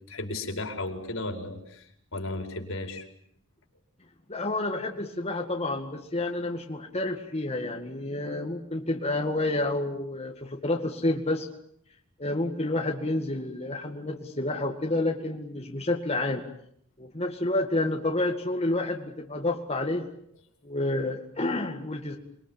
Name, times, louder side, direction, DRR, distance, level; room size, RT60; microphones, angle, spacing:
voice 1, 0.1-3.1, left 2 dB, 70° left, 4 dB, 5.2 m, -35 dB
voice 2, 4.3-11.5 12.2-16.4 17.0-20.1 20.6-22.2, left 2 dB, 30° left, 2 dB, 2.1 m, -29 dB
28.5 x 22.5 x 9.0 m, 0.71 s
head